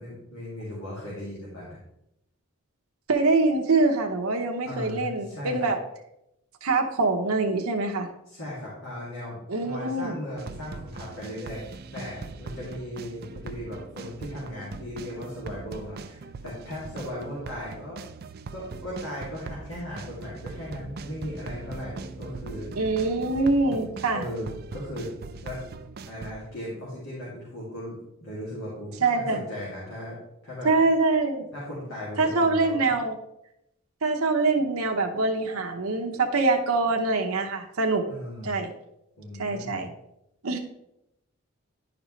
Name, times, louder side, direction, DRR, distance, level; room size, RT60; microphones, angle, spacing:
voice 1, 0.0-1.8 4.6-5.7 8.3-18.0 18.5-22.7 23.6-23.8 24.1-25.1 25.4-25.6 26.1-30.2 30.4-30.7 31.5-32.8 38.1-38.6 39.2-39.8, left 1 dB, 70° left, -7 dB, 2.4 m, -37 dB
voice 2, 3.1-5.8 6.6-8.1 9.5-10.1 22.8-24.2 29.0-29.4 30.6-31.5 32.2-33.2 34.0-38.0 38.4-38.7 39.4-39.9 40.4-40.6, right 3 dB, 80° right, 3 dB, 0.8 m, -24 dB
sound 1, 10.4-26.3, right 4 dB, 45° right, 0.4 m, -41 dB
10.5 x 5.1 x 3.2 m, 0.83 s
head